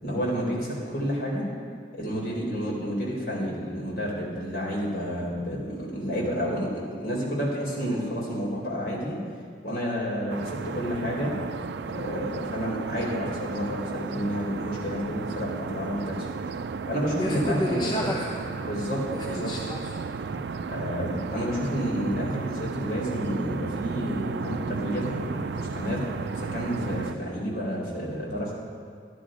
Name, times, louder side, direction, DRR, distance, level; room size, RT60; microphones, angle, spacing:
voice 1, 0.0-1.5 1.9-9.2 9.6-11.4 11.9-16.3 16.9-18.1 18.5-19.5 20.7-28.5, equal, 60° left, -4 dB, 4.1 m, -30 dB
sound 1, 10.3-27.1, right 5 dB, 75° right, 0.4 m, -34 dB
voice 2, 17.2-18.5 19.1-20.5, left 1 dB, 25° left, -2 dB, 0.9 m, -32 dB
13.0 x 11.0 x 5.1 m, 2.3 s
head